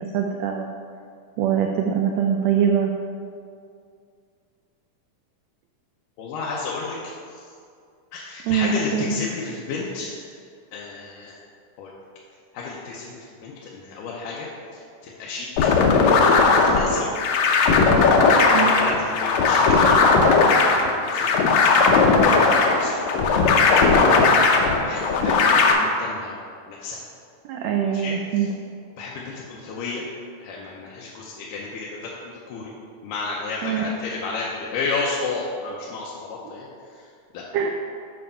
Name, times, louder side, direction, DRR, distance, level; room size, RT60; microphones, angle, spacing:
voice 1, 0.1-0.7 1.4-2.9 8.5-9.1 18.5-18.7 27.4-28.5 33.6-33.8 37.5-37.7, right 8 dB, 90° right, 3 dB, 1.5 m, -23 dB
voice 2, 6.2-7.4 8.1-10.2 10.7-11.4 11.8-11.9 12.5-15.7 16.2-17.1 17.6-20.0 20.3-26.4 26.7-27.0 27.8-28.5 29.0-30.0 30.4-32.7 33.0-37.1 37.3-37.4, left 3 dB, 90° left, -4 dB, 2.3 m, -33 dB
sound 1, 15.6-25.7, left 4 dB, 70° left, 1.8 m, -17 dB
7.7 x 5.2 x 5.6 m, 2.3 s
omnidirectional pair, 3.7 m